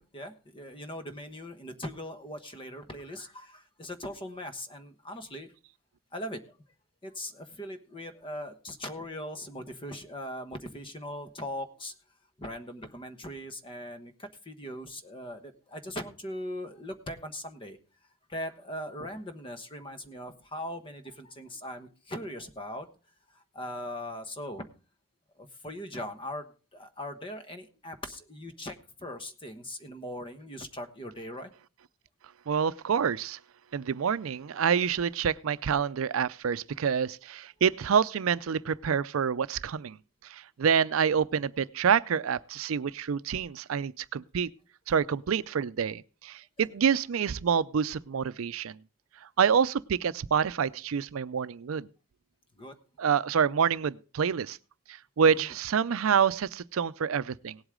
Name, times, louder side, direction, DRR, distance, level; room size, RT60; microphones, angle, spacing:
voice 1, 0.0-5.5 6.1-6.6 7.0-11.9 12.4-17.8 18.3-22.9 23.3-24.7 25.4-31.5 52.6-52.7 55.4-55.5, left 1 dB, 25° left, 1.2 m, -40 dB
voice 2, 32.5-33.4 33.7-40.0 40.3-44.5 44.9-48.8 49.4-51.9 53.0-54.6 54.9-57.6, right 7 dB, 80° right, 0.5 m, -27 dB
18.0 x 8.1 x 3.7 m
head